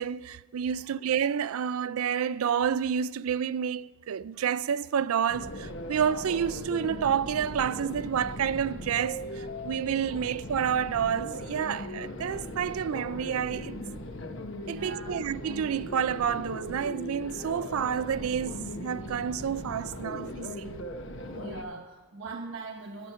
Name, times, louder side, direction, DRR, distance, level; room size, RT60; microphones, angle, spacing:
voice 1, 0.0-13.8 14.7-20.7, right 8 dB, 90° right, 0.4 m, -29 dB
sound 1, 5.3-21.6, left 1 dB, 60° left, 0.9 m, -39 dB
voice 2, 14.6-15.2 21.2-23.1, right 3 dB, 60° right, 1.1 m, -41 dB
12.0 x 11.0 x 5.6 m
head